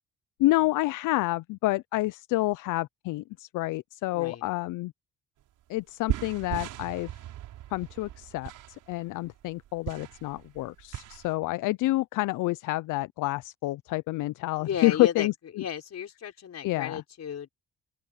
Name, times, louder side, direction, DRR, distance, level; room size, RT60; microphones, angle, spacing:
voice 1, 0.4-4.9 5.7-7.1 7.7-8.5 8.9-15.6 16.6-17.0, left 19 dB, 85° left, 0.5 m, -28 dB
voice 2, 4.1-4.4 14.6-15.3 15.6-17.5, left 8 dB, 60° left, 5.9 m, -34 dB
sound 1, 5.4-5.5 5.8-11.3, right 13 dB, 85° right, 4.8 m, -38 dB
open air
cardioid pair, 90°, 30 cm